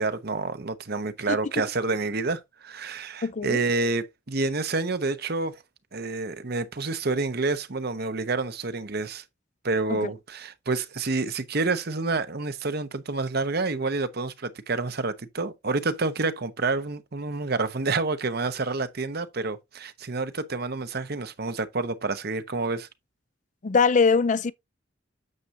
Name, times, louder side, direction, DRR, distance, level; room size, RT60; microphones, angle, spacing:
voice 1, 0.0-5.6 5.9-9.2 9.6-22.9, right 3 dB, 60° right, 1.0 m, -28 dB
voice 2, 3.2-3.6 9.9-10.0 23.6-24.5, left 5 dB, 40° left, 0.5 m, -22 dB
9.5 x 7.2 x 2.7 m
head